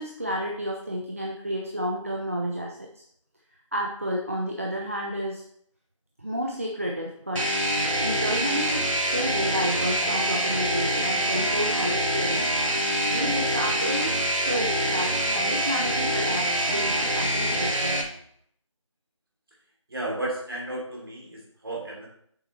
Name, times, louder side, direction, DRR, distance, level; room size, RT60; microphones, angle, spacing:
voice 1, 0.0-3.0 3.7-5.4 6.2-7.5 8.0-12.4 13.1-18.0, equal, 25° right, -1 dB, 0.7 m, -31 dB
sound 1, 7.4-18.0, right 1 dB, 75° right, 2.0 m, -25 dB
voice 2, 19.9-22.1, right 1 dB, 45° right, -2 dB, 3.2 m, -33 dB
8.5 x 7.0 x 3.3 m, 0.65 s
figure-of-eight pair, 175°, 17 cm